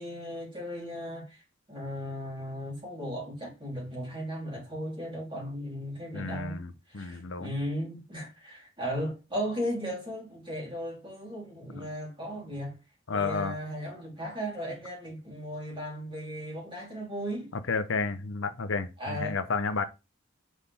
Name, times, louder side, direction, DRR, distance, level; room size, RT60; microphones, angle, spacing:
voice 1, 0.0-1.4 1.7-6.6 6.9-12.8 13.1-17.5 19.0-19.4, equal, 25° right, 3.3 m, -36 dB
voice 2, 6.1-7.5 13.1-13.6 17.7-19.8, left 4 dB, 85° left, 0.8 m, -31 dB
6.4 x 5.4 x 3.5 m
head